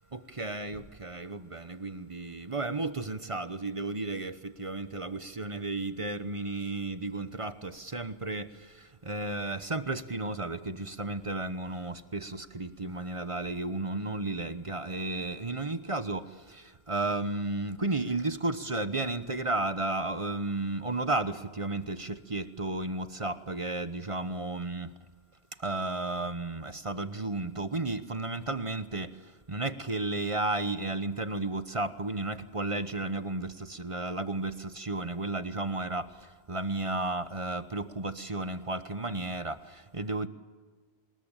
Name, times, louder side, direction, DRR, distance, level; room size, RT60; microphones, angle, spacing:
voice 1, 0.1-24.9 25.6-40.3, right 2 dB, 30° right, 1.1 m, -33 dB
26.0 x 21.0 x 9.0 m
omnidirectional pair, 1.1 m